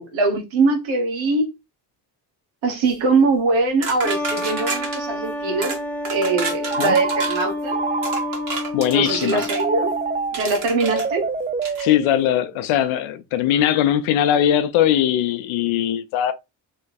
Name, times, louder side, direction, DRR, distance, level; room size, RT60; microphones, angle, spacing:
voice 1, 0.0-1.5 2.6-5.7 6.1-7.8 8.9-9.9 10.3-11.3, right 3 dB, 80° right, 1.4 m, -22 dB
sound 1, 3.8-5.0 5.6-5.8 6.1-7.5 8.0-9.7 10.3-11.1 11.6-11.9, right 3 dB, 45° right, 1.8 m, -30 dB
sound 2, 4.0-10.3, left 1 dB, 5° left, 1.0 m, -29 dB
Telephone, 6.7-8.7 9.5-12.6, right 4 dB, 20° right, 0.4 m, -27 dB
voice 2, 8.7-9.5 11.8-16.3, left 10 dB, 85° left, 0.7 m, -20 dB
3.2 x 3.1 x 4.1 m
supercardioid pair, 60°, 46 cm